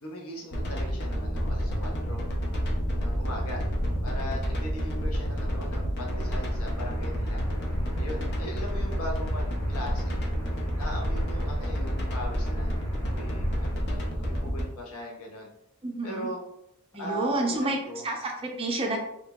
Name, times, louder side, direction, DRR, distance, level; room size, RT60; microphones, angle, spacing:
voice 1, 0.0-2.2 2.9-3.6 4.0-7.4 8.0-10.2 10.8-12.7 13.0-15.5 16.0-16.4 17.0-18.0, equal, 75° left, -1 dB, 0.8 m, -39 dB
sound 1, 0.5-14.6, equal, 50° left, 0.5 m, -29 dB
sound 2, 6.1-13.7, equal, 15° left, 0.7 m, -48 dB
voice 2, 15.8-16.3 16.9-17.8 18.0-19.0, right 2 dB, 25° right, 1 dB, 0.5 m, -29 dB
2.9 x 2.6 x 2.3 m, 0.77 s
head